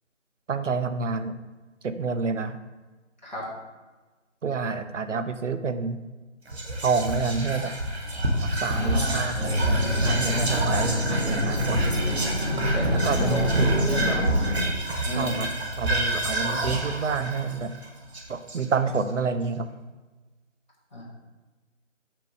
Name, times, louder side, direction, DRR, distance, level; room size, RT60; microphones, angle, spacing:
voice 1, 0.5-1.4 1.8-2.6 4.4-6.0 6.8-7.8 8.4-11.8 12.9-14.2 15.1-15.5 15.8-17.7 18.3-19.7, right 4 dB, 70° right, 10 dB, 0.6 m, -28 dB
Whispering, 6.5-19.0, right 1 dB, 55° right, 1.2 m, -28 dB
voice 2, 8.7-9.2 12.7-14.2 15.0-15.4 20.9-21.0, equal, 35° left, -6 dB, 1.8 m, -32 dB
sound 1, 9.3-14.6, left 1 dB, 5° right, 1.9 m, -27 dB
5.6 x 3.6 x 5.3 m, 1.2 s
figure-of-eight pair, 165°, 38 cm